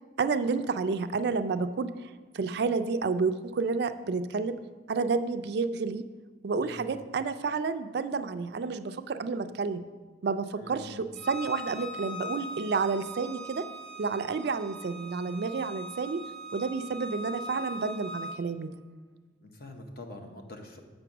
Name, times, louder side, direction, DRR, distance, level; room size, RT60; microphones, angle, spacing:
voice 1, 0.2-1.9 2.3-4.6 4.9-6.0 6.4-9.9 10.2-13.7 14.0-16.2 16.5-18.7, right 4 dB, 60° right, 11 dB, 0.4 m, -30 dB
voice 2, 6.6-7.0 10.6-11.1 19.4-20.8, left 1 dB, 55° left, 4 dB, 0.9 m, -45 dB
Bowed string instrument, 11.2-18.4, equal, 5° left, 0.5 m, -41 dB
7.0 x 5.3 x 5.9 m, 1.4 s
head